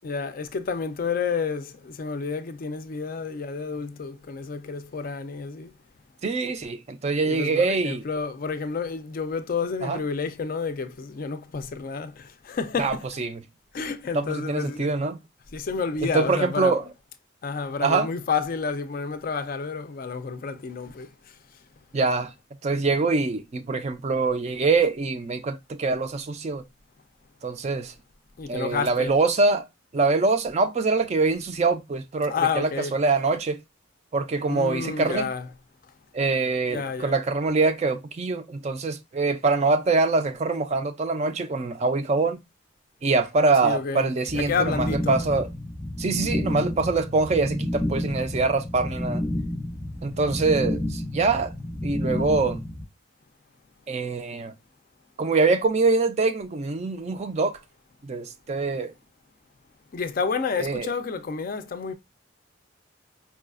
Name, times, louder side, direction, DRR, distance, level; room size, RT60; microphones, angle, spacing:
voice 1, 0.0-5.7 7.2-13.1 13.7-14.9 15.5-16.8 17.4-21.3 28.4-29.1 32.3-33.0 34.5-35.5 36.7-37.1 43.6-45.2 59.9-61.9, left 5 dB, 45° left, 0.4 m, -30 dB
voice 2, 6.2-8.0 9.8-10.0 12.8-13.4 14.1-15.2 16.1-16.8 17.8-18.1 21.9-22.3 22.6-26.6 27.4-27.9 28.5-29.7 29.9-33.6 34.1-35.3 36.1-42.4 43.0-45.5 46.0-49.2 50.0-51.5 51.8-52.6 53.9-54.5 55.2-57.6 58.0-58.9 60.6-60.9, right 3 dB, 35° right, 0.3 m, -24 dB
sound 1, 44.3-52.8, left 1 dB, 10° left, 0.7 m, -30 dB
4.7 x 2.3 x 2.3 m
head